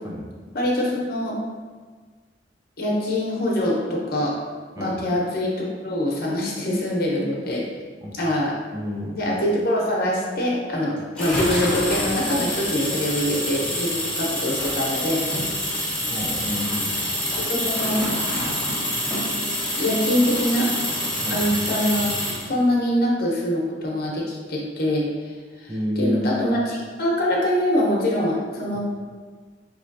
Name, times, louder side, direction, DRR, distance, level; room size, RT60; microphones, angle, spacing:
voice 1, 0.5-1.4 2.8-4.3 4.8-7.6 8.1-8.5 9.1-15.2 17.4-18.5 19.8-20.7 21.3-22.1 22.4-25.1 25.6-28.8, left 1 dB, 55° left, -3 dB, 1.0 m, -24 dB
voice 2, 8.7-9.2 16.1-17.0 21.2-21.5 25.7-26.3, equal, 20° right, -2 dB, 0.6 m, -29 dB
sound 1, 11.2-22.5, equal, 5° left, 1.1 m, -26 dB
5.2 x 3.2 x 2.7 m, 1.5 s
head